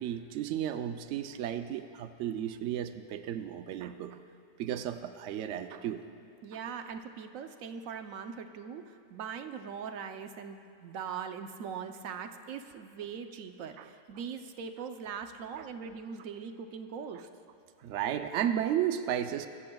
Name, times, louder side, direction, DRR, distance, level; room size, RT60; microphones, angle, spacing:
voice 1, 0.0-4.2 4.6-6.0 6.5-6.6 13.8-13.9 15.6-15.7 17.8-19.5, right 10 dB, 90° right, 9 dB, 0.6 m, -33 dB
voice 2, 6.4-17.3, right 6 dB, 60° right, 7 dB, 0.9 m, -41 dB
23.5 x 14.0 x 2.3 m, 2.3 s
omnidirectional pair, 1.9 m